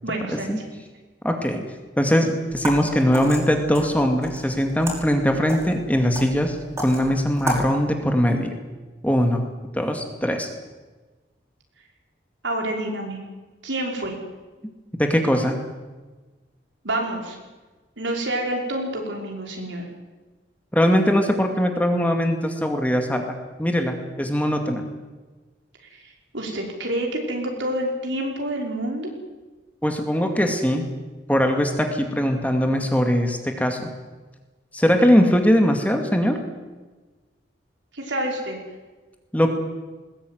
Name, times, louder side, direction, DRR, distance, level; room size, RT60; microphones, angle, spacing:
voice 1, 0.0-0.5 12.4-13.2 13.6-14.2 16.8-17.4 18.0-19.9 25.9-29.1 37.9-38.6, right 1 dB, 80° right, 1 dB, 5.7 m, -28 dB
voice 2, 1.2-1.7 2.0-8.5 9.0-9.4 9.7-10.5 15.0-15.6 20.7-24.8 29.8-30.8 31.3-33.9 34.7-36.4 39.3-39.5, equal, 10° left, 4 dB, 2.3 m, -21 dB
sound 1, 2.5-7.7, equal, 15° right, 5.5 m, -33 dB
20.5 x 20.0 x 9.5 m, 1.3 s
head